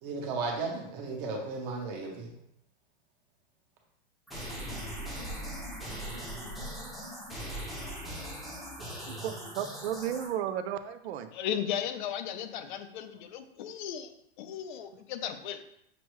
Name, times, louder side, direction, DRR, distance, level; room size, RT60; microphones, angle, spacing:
voice 1, 0.0-2.3, right 3 dB, 40° right, 1 dB, 0.9 m, -35 dB
sound 1, 4.3-10.3, equal, ahead, 0.7 m, -39 dB
voice 2, 9.1-11.3, right 10 dB, 85° right, 11 dB, 0.5 m, -34 dB
voice 3, 11.3-14.1 14.4-15.6, left 9 dB, 50° left, 9 dB, 0.5 m, -35 dB
6.1 x 2.2 x 3.0 m, 0.75 s
supercardioid pair, 155°, 31 cm